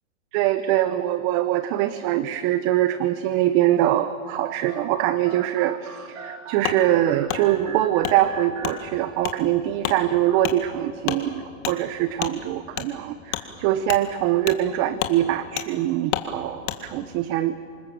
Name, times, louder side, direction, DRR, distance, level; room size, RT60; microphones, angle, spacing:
voice 1, 0.3-17.6, right 13 dB, 35° right, 13 dB, 0.9 m, -23 dB
sound 1, 4.4-9.5, right 7 dB, 85° right, 2.7 m, -39 dB
Wood, 6.6-6.8 7.3-7.4 8.0-8.2 8.6-8.8 9.2-9.4 9.8-10.0 10.4-10.6 11.0-11.2 11.6-11.8 12.2-12.3 12.7-12.9 13.3-13.4 13.9-14.0 14.5-14.6 15.0-15.2 15.6-15.7 16.1-16.3 16.6-16.8, left 14 dB, 60° left, 2.1 m, -28 dB
27.0 x 20.0 x 7.7 m, 2.3 s
hypercardioid pair, 135°, 40 cm